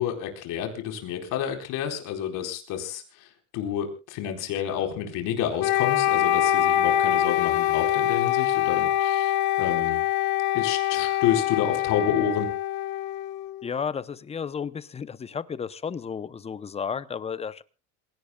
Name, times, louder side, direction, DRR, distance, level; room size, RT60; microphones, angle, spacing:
voice 1, 0.0-10.0 10.5-12.5, left 9 dB, 65° left, 4 dB, 4.3 m, -29 dB
Wind instrument woodwind instrument, 5.6-13.6, left 12 dB, 85° left, 1.0 m, -24 dB
voice 2, 13.6-17.6, left 6 dB, 20° left, 16 dB, 0.7 m, -33 dB
27.5 x 17.0 x 2.3 m, 0.31 s
cardioid pair, 130°, 34 cm